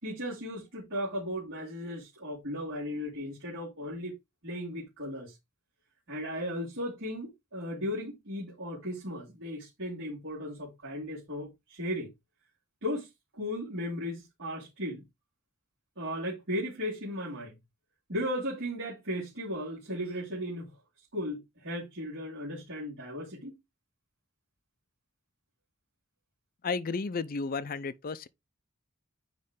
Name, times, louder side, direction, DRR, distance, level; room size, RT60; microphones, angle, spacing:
voice 1, 0.0-4.1 4.4-5.3 6.1-12.1 12.8-15.0 16.0-17.6 18.1-20.8 21.1-23.5, equal, 60° right, 2.9 m, -36 dB
voice 2, 26.6-28.3, left 4 dB, 45° left, 0.5 m, -33 dB
9.5 x 3.2 x 3.7 m
head